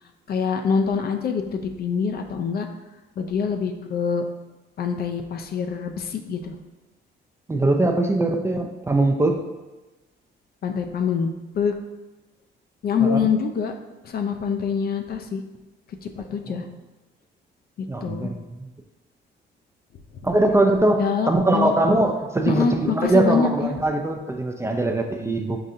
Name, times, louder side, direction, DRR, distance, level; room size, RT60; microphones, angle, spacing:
voice 1, 0.3-2.7 3.2-4.2 4.8-6.5 10.6-11.3 11.5-11.7 12.8-13.7 14.0-15.4 16.0-16.7 17.8-18.3 21.0-21.7 22.5-23.7, left 6 dB, 50° left, 6 dB, 0.4 m, -25 dB
voice 2, 7.5-9.4 13.0-13.2 16.5-16.6 17.9-18.7 20.2-25.6, right 2 dB, 15° right, 3 dB, 0.3 m, -21 dB
5.6 x 2.6 x 2.5 m, 1.1 s
cardioid pair, 90°, 20 cm